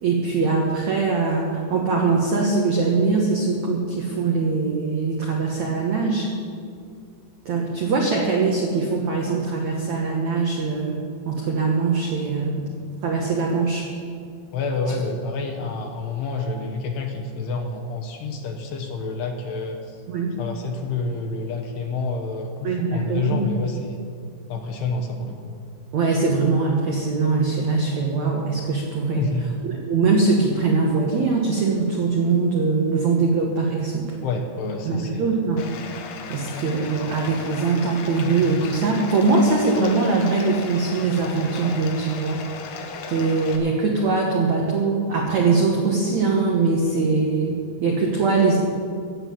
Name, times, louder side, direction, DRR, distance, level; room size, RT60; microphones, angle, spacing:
voice 1, 0.0-6.3 7.4-12.6 13.0-13.9 20.1-20.4 22.6-23.5 25.9-29.2 29.9-34.2 34.8-35.7 36.3-42.4 43.1-48.6, right 4 dB, 85° right, -1 dB, 1.6 m, -22 dB
voice 2, 14.5-20.0 20.4-24.0 24.5-25.5 29.2-29.5 34.2-35.4, left 3 dB, 70° left, 2 dB, 2.7 m, -28 dB
Bathtub (filling or washing), 35.6-43.6, left 5 dB, 90° left, 3.6 m, -36 dB
15.0 x 7.7 x 8.5 m, 2.3 s
omnidirectional pair, 5.5 m